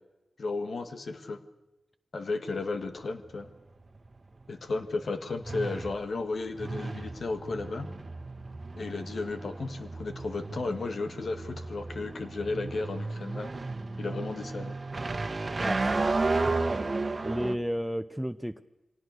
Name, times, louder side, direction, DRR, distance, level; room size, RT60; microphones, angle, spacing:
voice 1, 0.4-1.4 2.1-3.5 4.5-7.9 8.8-13.5 14.0-14.8, left 3 dB, 70° left, 8 dB, 1.7 m, -34 dB
sound 1, 2.5-17.6, right 3 dB, 45° right, 1.4 m, -34 dB
voice 2, 15.6-16.2 17.2-18.6, equal, 5° right, 8 dB, 0.7 m, -32 dB
23.5 x 18.0 x 6.5 m, 1.0 s
cardioid pair, 50°, 0 cm